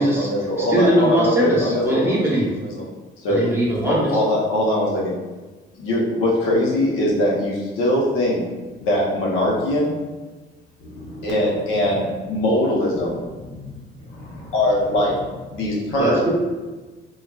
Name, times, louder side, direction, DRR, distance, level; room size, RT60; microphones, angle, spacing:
voice 1, 0.0-2.8 3.2-3.4 3.8-5.1 5.8-8.4 8.8-10.0 11.2-13.2 14.5-15.1 15.5-16.2, left 1 dB, 90° left, -4 dB, 0.7 m, -21 dB
voice 2, 0.6-2.5 3.3-4.1 16.0-16.3, right 1 dB, 10° right, -5 dB, 0.8 m, -21 dB
voice 3, 10.8-12.4 12.9-15.2 15.5-16.2, left 1 dB, 70° left, -5 dB, 1.0 m, -39 dB
3.0 x 2.3 x 2.2 m, 1.2 s
cardioid pair, 90°, 20 cm